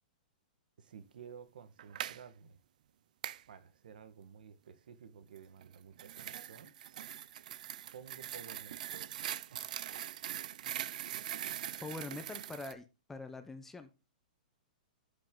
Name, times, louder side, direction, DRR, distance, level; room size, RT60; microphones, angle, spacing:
voice 1, 0.8-2.6 3.5-6.7 7.9-8.9 9.5-9.7, right 7 dB, 75° right, 12 dB, 1.5 m, -53 dB
sound 1, 1.8-2.2 3.2-3.4 5.6-12.7, right 11 dB, 60° right, 0.4 m, -42 dB
voice 2, 11.8-13.9, left 3 dB, 5° left, 8 dB, 0.7 m, -44 dB
12.0 x 5.4 x 3.8 m, 0.29 s
hypercardioid pair, 165°, 5 cm